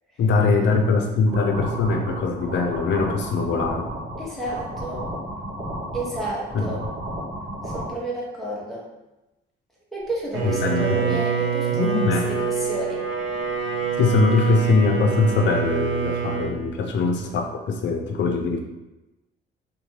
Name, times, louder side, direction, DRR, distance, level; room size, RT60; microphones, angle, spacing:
voice 1, 0.2-3.9 6.5-6.7 10.4-11.2 11.7-12.3 14.0-18.6, left 3 dB, 65° left, 3 dB, 0.5 m, -22 dB
sound 1, 1.3-7.9, equal, 35° right, 1.2 m, -33 dB
voice 2, 4.2-5.1 5.9-6.8 7.6-8.9 9.9-13.0, right 1 dB, ahead, -6 dB, 1.0 m, -31 dB
Bowed string instrument, 10.3-16.6, right 6 dB, 80° right, 0.5 m, -26 dB
2.7 x 2.2 x 3.1 m, 0.99 s
cardioid pair, 90°, 20 cm